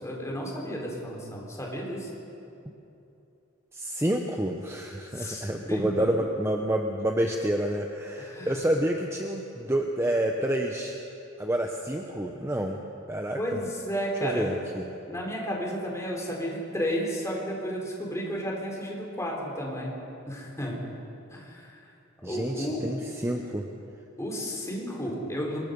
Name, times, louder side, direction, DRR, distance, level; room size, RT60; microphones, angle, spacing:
voice 1, 0.0-2.1 5.1-6.1 8.2-8.6 13.3-14.5 15.1-20.0 20.3-20.8 21.3-21.8 22.2-22.9 24.2-25.6, equal, 15° left, -2 dB, 4.2 m, -32 dB
voice 2, 3.7-11.0 11.4-12.8 13.1-13.4 14.2-14.9 22.2-23.7, right 1 dB, 10° right, 2 dB, 0.9 m, -28 dB
25.0 x 21.0 x 5.4 m, 2.8 s
head